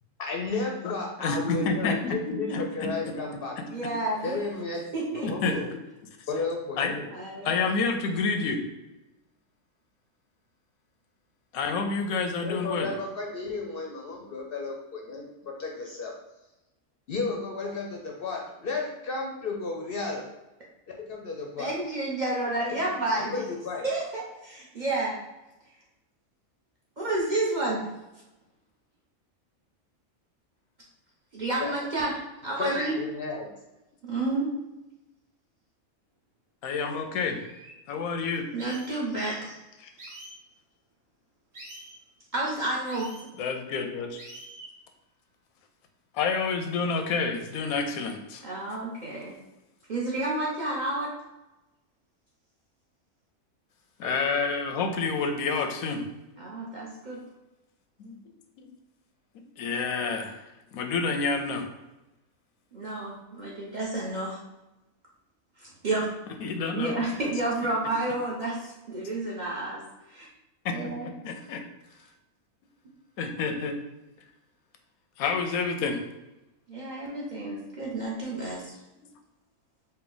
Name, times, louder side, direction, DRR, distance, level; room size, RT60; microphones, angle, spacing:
voice 1, 0.2-3.5 4.2-5.6 6.3-7.1 12.4-16.1 17.1-20.3 21.0-21.7 23.2-23.8 31.6-31.8 32.6-33.5, left 3 dB, 60° left, 0 dB, 0.6 m, -33 dB
voice 2, 1.2-3.1 5.2-5.6 6.8-6.9 7.4-8.7 11.5-12.9 15.1-15.2 36.6-37.4 37.9-38.4 39.8-39.9 43.4-44.2 46.1-48.4 54.0-56.1 58.0-58.2 58.6-58.7 59.6-61.7 66.4-67.0 70.6-70.7 71.2-71.6 72.0-72.1 73.2-73.8 75.2-76.0, left 4 dB, 90° left, 5 dB, 1.0 m, -29 dB
voice 3, 3.7-4.4 4.9-5.5 7.1-7.5 21.6-23.3 23.8-25.2 27.0-27.8 31.3-32.1 32.4-33.0 34.0-34.5 38.5-39.6 42.3-43.1 48.4-49.3 49.9-51.1 56.4-57.2 62.7-64.4 65.6-66.1 66.7-69.8 70.1-70.3 70.7-71.1 76.7-78.8, right 2 dB, 45° right, -5 dB, 0.7 m, -30 dB
sound 1, 37.3-37.7 38.6-39.0 40.0-40.4 41.5-41.9 42.9-43.3 44.2-44.7, right 1 dB, 60° right, 1.6 m, -45 dB
4.3 x 2.1 x 3.8 m, 0.99 s
omnidirectional pair, 1.4 m